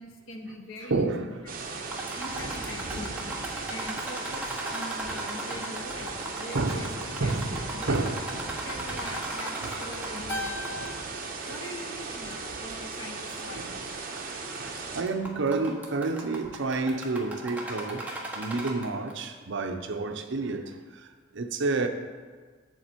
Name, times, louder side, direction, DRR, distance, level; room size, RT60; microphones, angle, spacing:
voice 1, 0.0-1.3 2.2-3.2 3.7-8.0 8.6-10.9 11.4-13.6, left 1 dB, 70° left, 1.0 m, -42 dB
voice 2, 0.8-1.3 6.0-6.1 6.5-6.9 7.2-7.6 7.9-8.3 8.7-8.9 9.6-9.8 11.5-11.6 12.5-12.6 13.6-13.9 14.5-21.9, right 3 dB, 65° right, 0.6 m, -30 dB
sound 1, 1.5-15.0, right 3 dB, 45° right, 1.0 m, -37 dB
sound 2, 1.8-10.9 11.2-11.3 12.0-12.1 12.7-12.8 13.9-14.2 14.6-14.8 15.1-19.1, right 1 dB, 10° right, 1.2 m, -37 dB
Keyboard (musical), 10.3-12.8, left 2 dB, 10° left, 0.7 m, -40 dB
7.8 x 7.1 x 4.4 m
head